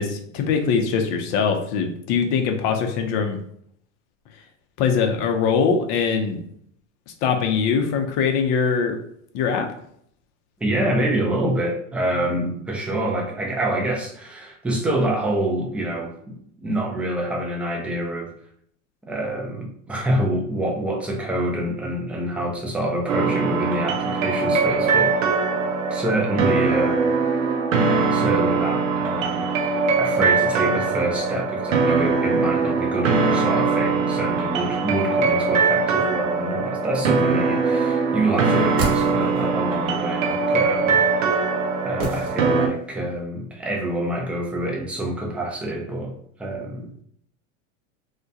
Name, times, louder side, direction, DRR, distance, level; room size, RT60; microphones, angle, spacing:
voice 1, 0.0-3.4 4.8-6.4 7.2-9.0 9.3-9.7, left 6 dB, 45° left, 5 dB, 0.6 m, -22 dB
voice 2, 10.6-18.3 19.0-25.1 25.9-27.1 28.1-41.5 41.8-46.1 46.4-47.0, right 1 dB, 5° right, -1 dB, 0.4 m, -26 dB
sound 1, 23.1-42.7, right 4 dB, 90° right, 0.5 m, -21 dB
sound 2, 38.4-39.6 42.0-42.9 43.2-43.3, right 2 dB, 35° right, 1.1 m, -30 dB
2.3 x 2.2 x 2.7 m, 0.66 s
hypercardioid pair, 105°, 38 cm